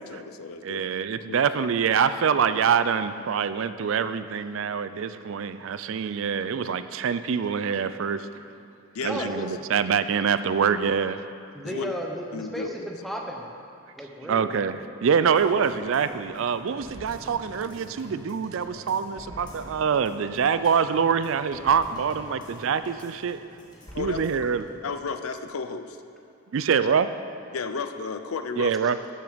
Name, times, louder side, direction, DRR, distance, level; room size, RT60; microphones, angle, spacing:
voice 1, 0.1-1.4 8.9-9.3 11.6-11.9 12.3-12.7 23.9-24.5 24.8-26.0 27.5-28.7, left 5 dB, 80° left, 9 dB, 0.6 m, -33 dB
voice 2, 0.6-8.3 9.0-11.2 14.2-23.4 24.0-24.6 26.5-27.1 28.6-29.0, right 6 dB, 65° right, 12 dB, 0.4 m, -25 dB
voice 3, 9.0-9.5 11.5-13.5 14.0-14.5, equal, ahead, 0 dB, 0.9 m, -34 dB
sound 1, 15.4-24.8 25.1-25.2, equal, 20° left, 1.8 m, -46 dB
12.0 x 7.0 x 5.1 m, 2.5 s
head